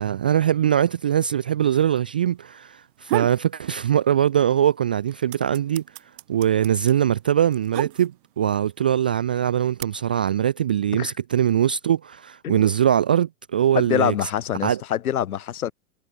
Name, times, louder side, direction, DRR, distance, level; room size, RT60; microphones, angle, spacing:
voice 1, 0.0-5.8 6.3-14.1 14.6-14.8, right 10 dB, 5° right, 0.4 m, -22 dB
sound 1, 2.8-3.5 3.9-4.6 4.8-8.4 9.2-9.8, right 19 dB, 35° right, 1.6 m, -32 dB
voice 2, 13.8-15.7, left 10 dB, 80° left, 7.1 m, -25 dB
supercardioid pair, 175°, 43 cm